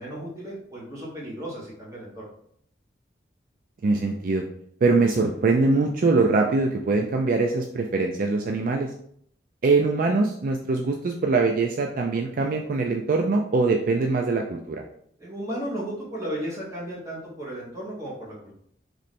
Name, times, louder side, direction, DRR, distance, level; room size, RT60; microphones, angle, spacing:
voice 1, 0.0-2.2 15.2-18.6, right 1 dB, 20° right, -5 dB, 1.5 m, -34 dB
voice 2, 3.8-4.4 4.8-8.9 9.6-14.8, right 3 dB, 50° right, 2 dB, 0.4 m, -23 dB
3.1 x 3.1 x 4.1 m, 0.67 s
head